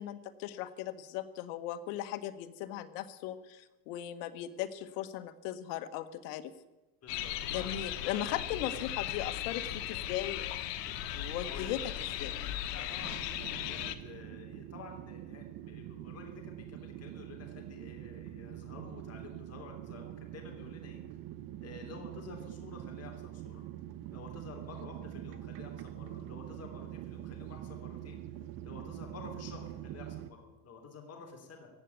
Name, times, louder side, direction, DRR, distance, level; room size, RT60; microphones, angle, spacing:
voice 1, 0.0-6.5 7.5-10.5 10.9-11.8 12.2-12.3, left 12 dB, 70° left, 12 dB, 1.4 m, -38 dB
voice 2, 7.0-7.8 8.1-8.3 8.7-8.8 11.4-12.4 12.7-21.0 21.6-23.6 24.1-28.2 28.6-31.7, left 4 dB, 30° left, 2 dB, 3.3 m, -50 dB
sound 1, 7.1-14.0, left 12 dB, 90° left, 1.2 m, -37 dB
sound 2, 13.0-30.3, right 13 dB, 45° right, 1.0 m, -45 dB
16.0 x 8.1 x 9.5 m, 1.1 s
supercardioid pair, 120°, 47 cm